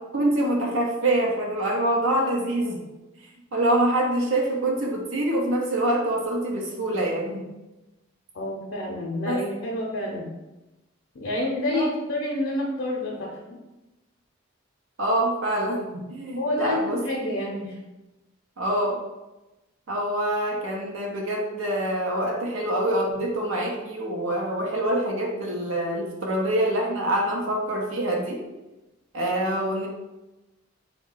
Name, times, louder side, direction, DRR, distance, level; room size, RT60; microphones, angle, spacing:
voice 1, 0.1-2.8 3.5-7.4 9.2-9.4 11.7-11.9 15.0-17.0 18.6-19.0 19.9-28.4 29.1-29.9, right 1 dB, 75° right, -1 dB, 0.7 m, -25 dB
voice 2, 8.3-10.3 11.1-13.6 16.4-17.8, left 1 dB, 70° left, -3 dB, 0.6 m, -28 dB
3.6 x 2.2 x 3.7 m, 1.0 s
head